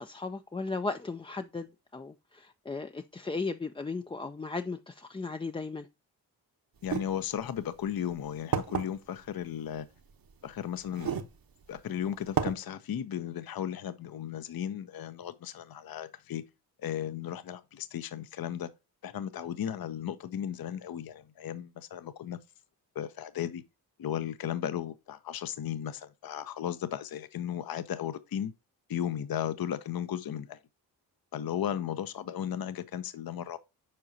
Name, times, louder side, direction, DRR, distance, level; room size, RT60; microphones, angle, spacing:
voice 1, 0.0-5.9, left 3 dB, 15° left, 0.4 m, -36 dB
voice 2, 6.8-9.9 10.4-11.1 11.7-16.4 16.8-18.7 19.0-22.4 22.9-23.6 24.0-28.5 28.9-30.6 31.3-33.6, left 10 dB, 55° left, 0.7 m, -35 dB
sound 1, 6.8-7.0 7.9-8.0 8.5-8.8 10.1-10.2 10.9-11.3 11.8-11.9 12.4-12.5, right 7 dB, 50° right, 1.0 m, -30 dB
7.6 x 4.8 x 2.7 m
supercardioid pair, 50°, 45 cm